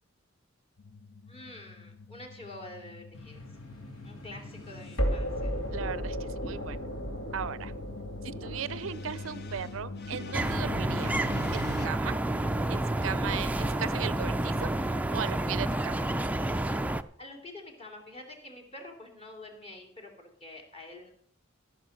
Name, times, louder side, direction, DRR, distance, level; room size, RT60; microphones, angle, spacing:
sound 1, 0.8-11.9, left 4 dB, 50° left, 0.8 m, -44 dB
voice 1, 1.2-3.4 4.0-5.5 17.2-21.1, left 2 dB, 30° left, 0 dB, 2.8 m, -47 dB
sound 2, 3.1-14.2, equal, 75° left, 2.4 m, -37 dB
voice 2, 5.7-6.2 6.4-6.8 7.3-7.7 8.2-11.2 11.5-12.1 12.7-14.7 15.1-16.1, right 8 dB, 70° right, 18 dB, 0.5 m, -37 dB
sound 3, 10.3-17.0, right 1 dB, 5° right, 0.4 m, -29 dB
14.5 x 6.2 x 6.5 m, 0.63 s
head